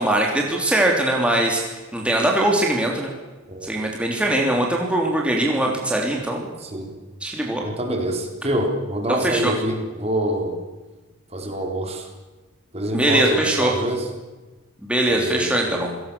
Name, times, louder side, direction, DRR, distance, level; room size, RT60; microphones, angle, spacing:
voice 1, 0.0-1.6 1.9-3.1 3.6-6.5 7.2-7.6 9.2-9.5 12.9-13.7 14.8-15.9, right 1 dB, 5° right, -1 dB, 3.3 m, -21 dB
voice 2, 6.6-6.9 7.6-10.6 11.3-12.1 12.7-14.1 15.1-15.9, right 1 dB, 30° right, 3 dB, 3.7 m, -26 dB
28.0 x 18.0 x 7.0 m, 1.2 s
head